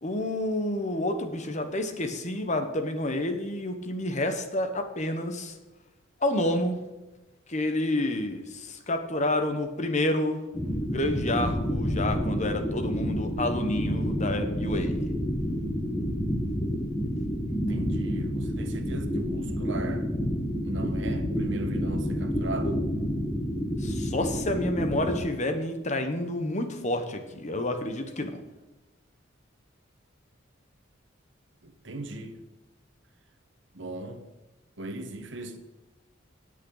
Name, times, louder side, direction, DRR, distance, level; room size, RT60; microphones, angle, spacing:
voice 1, 0.0-5.5 6.2-6.8 7.5-10.4 10.9-15.1 23.8-28.4, left 1 dB, 35° left, 7 dB, 1.1 m, -29 dB
sound 1, 10.5-25.2, equal, 15° left, 1.3 m, -29 dB
voice 2, 17.5-20.1 20.6-22.8 31.6-32.3 33.7-34.2 34.8-35.6, right 1 dB, 65° right, 7 dB, 1.2 m, -38 dB
18.5 x 6.5 x 4.0 m, 1.1 s
head